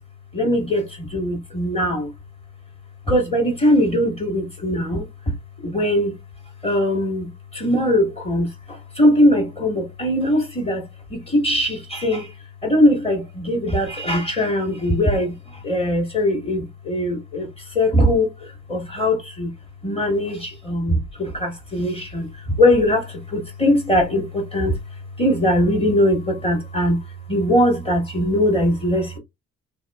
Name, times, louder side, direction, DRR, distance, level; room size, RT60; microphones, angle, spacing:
voice 1, 0.3-2.1 3.1-5.3 5.6-6.1 6.6-12.3 12.6-19.5 19.8-24.8 25.2-27.0 27.3-29.2, left 1 dB, 20° left, 1.4 m, -21 dB
2.8 x 2.6 x 2.3 m
cardioid pair, 70°, 30 cm